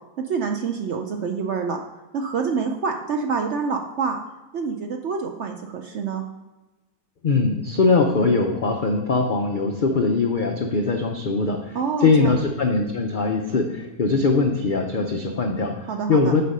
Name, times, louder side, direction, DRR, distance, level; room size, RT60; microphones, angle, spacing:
voice 1, 0.3-1.8 2.1-4.2 4.5-6.2 11.7-12.3 15.9-16.3, right 5 dB, 65° right, 3 dB, 0.7 m, -26 dB
voice 2, 7.2-15.7 16.1-16.4, left 3 dB, 85° left, 3 dB, 0.4 m, -21 dB
6.5 x 5.1 x 5.3 m, 1.1 s
omnidirectional pair, 1.7 m